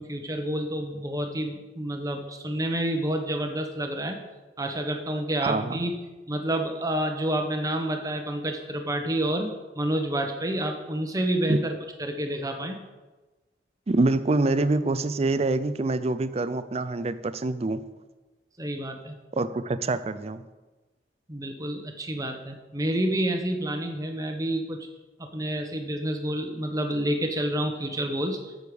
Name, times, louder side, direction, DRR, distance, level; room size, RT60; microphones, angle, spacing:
voice 1, 0.0-4.2 4.6-5.9 6.3-12.8 18.6-19.2 21.3-24.9 25.2-28.5, right 1 dB, 20° right, 5 dB, 1.0 m, -29 dB
voice 2, 5.4-5.8 11.5-11.6 13.9-17.8 19.4-20.4, right 2 dB, 35° right, 12 dB, 0.5 m, -25 dB
8.2 x 6.5 x 6.9 m, 1.2 s
head